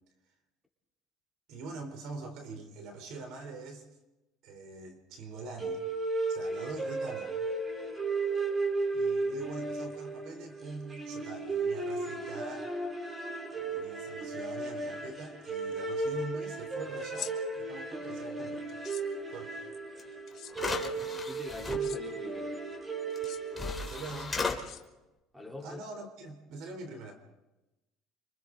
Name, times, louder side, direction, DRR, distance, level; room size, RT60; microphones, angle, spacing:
voice 1, 1.5-3.9 4.4-5.8 6.3-7.3 8.9-12.7 13.5-18.6 19.3-19.6 23.8-24.7 25.6-27.2, right 3 dB, 70° right, 6 dB, 3.7 m, -44 dB
sound 1, 5.6-24.1, right 3 dB, 25° right, 4.0 m, -35 dB
sound 2, 17.0-17.3 18.7-19.0 20.3-20.5 21.7-22.0 23.1-23.4 24.6-25.2, left 10 dB, 50° left, 1.7 m, -43 dB
sound 3, 20.0-20.1 20.5-21.8 23.1-23.2 23.5-24.6, left 4 dB, 15° left, 2.9 m, -35 dB
voice 2, 20.8-22.6 25.3-25.8, left 2 dB, 5° right, 0 dB, 3.9 m, -44 dB
30.0 x 26.0 x 3.9 m, 1.0 s
supercardioid pair, 105°, 0 cm